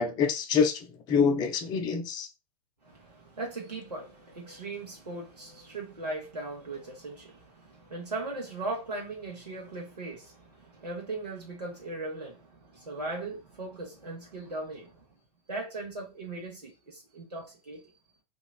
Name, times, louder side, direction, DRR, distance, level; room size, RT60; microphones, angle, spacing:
voice 1, 0.0-2.3, left 6 dB, 20° left, 0.4 m, -26 dB
voice 2, 2.8-15.1 15.5-17.9, right 2 dB, 80° right, 0.8 m, -38 dB
2.9 x 2.3 x 2.2 m
figure-of-eight pair, 95°, 20 cm